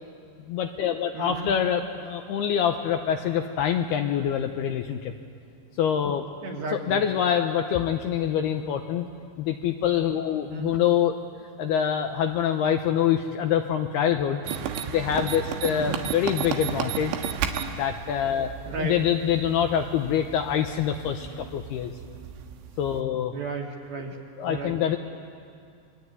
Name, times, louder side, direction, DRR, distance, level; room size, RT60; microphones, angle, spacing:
voice 1, 0.5-5.1 5.8-6.2 6.7-9.1 9.4-11.1 11.6-14.4 14.9-17.1 17.8-18.5 18.8-21.9 22.8-23.3 24.4-25.0, left 9 dB, 75° left, 5 dB, 2.5 m, -25 dB
voice 2, 1.1-1.5 6.4-7.0 10.5-10.8 15.7-16.0 18.7-19.0 23.3-24.2 24.5-24.8, right 4 dB, 55° right, 0 dB, 4.1 m, -34 dB
sound 1, 14.4-23.0, right 8 dB, 90° right, 3.8 m, -34 dB
26.0 x 23.5 x 9.6 m, 2.3 s
omnidirectional pair, 5.4 m